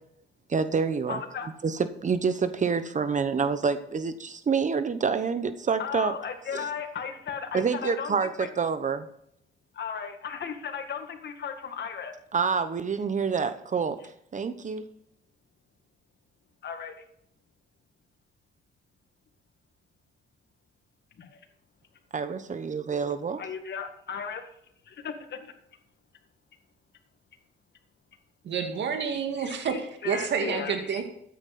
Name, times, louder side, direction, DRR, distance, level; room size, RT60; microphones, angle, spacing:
voice 1, 0.5-1.2 1.6-6.1 6.5-6.6 7.5-8.3 8.6-9.1 12.3-14.0 14.3-14.9 22.1-23.4, right 5 dB, 40° right, 11 dB, 1.0 m, -27 dB
voice 2, 1.1-1.5 5.8-8.5 9.7-12.1 16.6-17.0 21.2-21.4 23.1-24.5 24.8-25.6 29.4-31.0, left 6 dB, 60° left, 6 dB, 2.0 m, -36 dB
voice 3, 28.4-31.0, right 6 dB, 65° right, 4 dB, 2.1 m, -29 dB
13.5 x 9.4 x 4.3 m, 0.73 s
cardioid pair, 90°, 20 cm